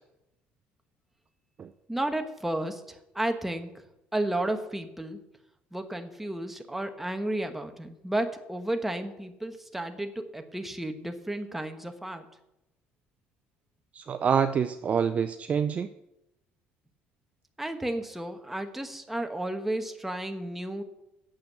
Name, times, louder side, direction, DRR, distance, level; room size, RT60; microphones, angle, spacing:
voice 1, 1.9-3.7 4.1-5.2 5.7-12.3 17.6-20.8, right 1 dB, 5° right, 6 dB, 1.2 m, -32 dB
voice 2, 13.9-15.9, right 7 dB, 35° right, 10 dB, 0.4 m, -26 dB
8.9 x 7.4 x 7.8 m, 0.88 s
cardioid pair, 120°, 4 cm